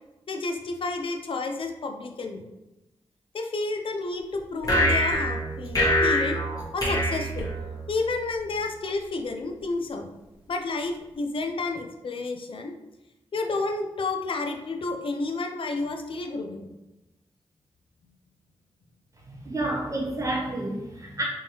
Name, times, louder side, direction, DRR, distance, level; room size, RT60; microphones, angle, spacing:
voice 1, 0.3-2.4 3.3-6.4 6.7-7.5 7.9-10.1 10.5-12.7 13.3-16.7, left 3 dB, 55° left, 4 dB, 0.5 m, -31 dB
sound 1, 4.6-8.1, equal, 35° left, 1.4 m, -24 dB
voice 2, 19.3-21.2, right 1 dB, 30° right, -2 dB, 1.2 m, -30 dB
3.6 x 2.9 x 2.9 m, 0.99 s
cardioid pair, 50°, 11 cm